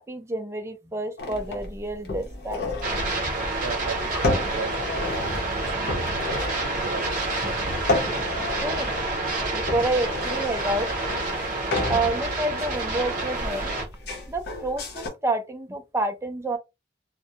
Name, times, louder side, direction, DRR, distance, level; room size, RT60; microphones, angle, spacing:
voice 1, 0.0-2.7 3.0-3.2 8.4-8.9 9.5-10.9 11.9-13.7 14.3-16.6, right 2 dB, 15° right, 0.4 m, -29 dB
sound 1, 1.2-15.1, left 2 dB, 60° left, 0.7 m, -32 dB
sound 2, 2.8-13.9, right 2 dB, 50° right, 0.8 m, -28 dB
voice 2, 3.6-4.8 5.1-5.5 5.8-6.4 6.7-7.1, right 5 dB, 85° right, 0.4 m, -37 dB
2.2 x 2.1 x 2.7 m
head